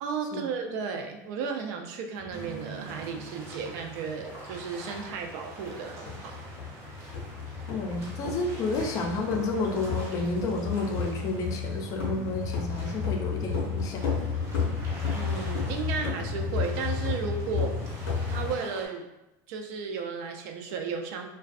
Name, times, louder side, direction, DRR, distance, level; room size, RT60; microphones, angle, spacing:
voice 1, 0.0-6.4 15.1-17.8 18.3-19.1 19.5-21.3, right 5 dB, 65° right, 4 dB, 0.4 m, -34 dB
sound 1, 2.2-18.5, left 5 dB, 90° left, 0.6 m, -33 dB
sound 2, 2.3-18.9, right 1 dB, 25° right, 0.7 m, -46 dB
sound 3, 2.3-9.9, right 7 dB, 90° right, 0.8 m, -50 dB
voice 2, 7.7-14.0, left 3 dB, 40° left, 3 dB, 0.4 m, -31 dB
2.5 x 2.2 x 2.3 m, 0.95 s
supercardioid pair, 140°, 10 cm